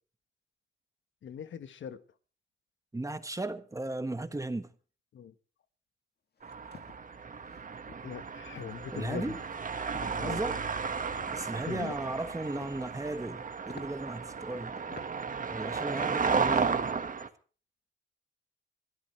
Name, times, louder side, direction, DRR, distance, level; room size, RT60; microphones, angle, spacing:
voice 1, 1.2-2.0 5.1-5.3 8.0-9.4 10.1-10.4 11.6-12.0, left 8 dB, 80° left, 1.3 m, -40 dB
voice 2, 2.9-4.7 8.9-9.4 10.0-10.6 11.3-14.8 15.5-16.8, right 2 dB, 15° right, 1.5 m, -36 dB
sound 1, 6.4-7.0 7.5-7.6 7.9-8.2 8.5-8.8 9.2-9.6 9.9-10.2 10.5-11.3 12.3-12.8 13.3-13.4 13.7-13.9 14.5-14.6 14.9-15.1 15.5-15.8, left 5 dB, 60° left, 2.1 m, -50 dB
sound 2, 6.4-17.3, right 5 dB, 45° right, 1.6 m, -34 dB
26.5 x 12.5 x 3.2 m
cardioid pair, 100°, 19 cm